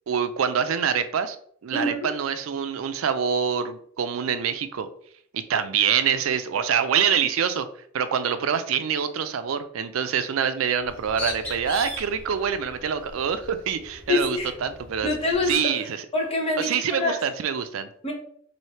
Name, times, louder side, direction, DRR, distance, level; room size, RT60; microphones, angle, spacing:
voice 1, 0.1-1.4 1.6-4.9 5.3-7.7 7.9-15.1 15.5-16.0 16.6-17.9, right 7 dB, 90° right, 11 dB, 0.4 m, -25 dB
voice 2, 1.7-2.1 14.1-14.5 15.0-15.9 16.1-17.2 18.0-18.1, left 2 dB, 30° left, 0 dB, 0.9 m, -26 dB
Bird, 10.8-15.6, left 1 dB, 10° left, 1.0 m, -39 dB
3.2 x 2.7 x 4.2 m, 0.62 s
head